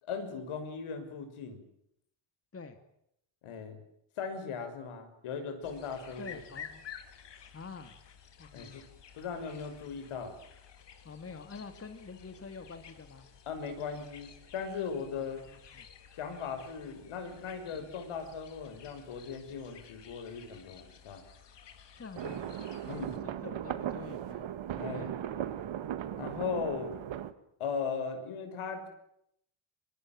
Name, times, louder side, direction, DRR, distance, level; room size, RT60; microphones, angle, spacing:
voice 1, 0.0-1.6 3.4-3.8 4.2-6.4 8.5-8.8 9.1-10.4 13.5-15.4 16.1-21.3 22.9-23.2 24.8-25.1 26.2-26.9 27.6-28.9, left 5 dB, 80° left, 7 dB, 6.4 m, -38 dB
sound 1, 5.6-23.2, left 8 dB, 55° left, 3.7 m, -53 dB
voice 2, 6.2-6.8 7.5-8.0 8.4-8.8 11.0-13.3 15.1-15.9 17.7-17.8 22.0-22.6 22.9-24.5 24.9-25.4, left 4 dB, 30° left, 7 dB, 2.7 m, -47 dB
sound 2, 22.2-27.3, right 10 dB, 65° right, 1.9 m, -37 dB
24.5 x 22.5 x 9.0 m, 0.75 s
cardioid pair, 105°, 49 cm